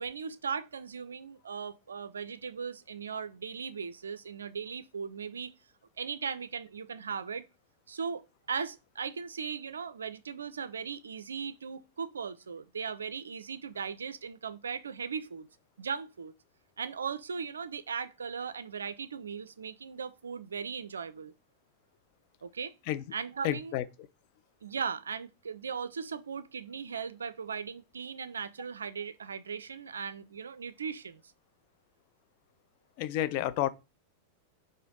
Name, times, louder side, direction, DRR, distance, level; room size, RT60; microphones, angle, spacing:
voice 1, 0.0-5.5 6.0-7.5 7.9-8.2 8.5-15.5 15.8-16.3 16.8-21.3 22.4-22.7 23.1-23.8 24.6-31.2, right 6 dB, 70° right, 0.3 m, -38 dB
voice 2, 23.4-23.8 33.0-33.7, left 13 dB, 45° left, 0.3 m, -30 dB
5.0 x 2.6 x 3.6 m
figure-of-eight pair, 90°, 0 cm